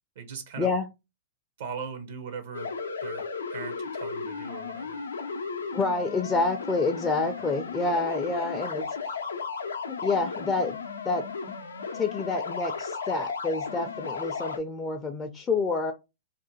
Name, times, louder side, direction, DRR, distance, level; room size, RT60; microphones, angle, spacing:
voice 1, 0.2-0.7 1.6-2.7 3.0-3.2 3.5-5.0 7.4-7.5, right 6 dB, 65° right, 0.5 m, -39 dB
sound 1, 2.5-14.6, left 5 dB, 85° left, 0.4 m, -35 dB
voice 2, 5.7-9.2 9.9-10.8 11.0-11.2 11.9-15.9, left 3 dB, 15° left, 0.3 m, -28 dB
2.4 x 2.1 x 2.9 m
hypercardioid pair, 115°, 0 cm